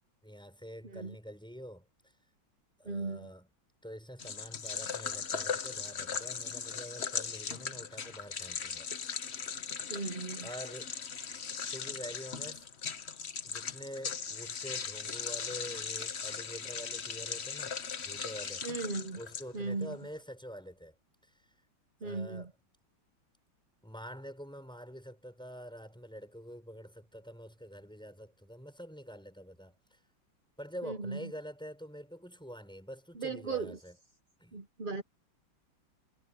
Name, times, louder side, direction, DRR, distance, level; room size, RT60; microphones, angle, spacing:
voice 1, 0.2-2.1 2.8-3.5 3.8-8.9 9.5-9.7 10.4-10.9 11.7-12.7 13.4-17.7 18.0-18.6 19.1-20.9 21.2-21.5 22.0-22.5 23.8-30.0 30.6-34.0 34.4-34.6, equal, ahead, 6.1 m, -46 dB
voice 2, 0.8-1.1 2.8-3.3 9.9-10.5 18.6-19.2 19.5-19.9 22.0-22.5 30.8-31.3 33.1-33.8 34.5-35.0, right 4 dB, 45° right, 0.6 m, -37 dB
sound 1, 4.2-19.8, left 6 dB, 40° left, 1.0 m, -38 dB
omnidirectional pair, 2.2 m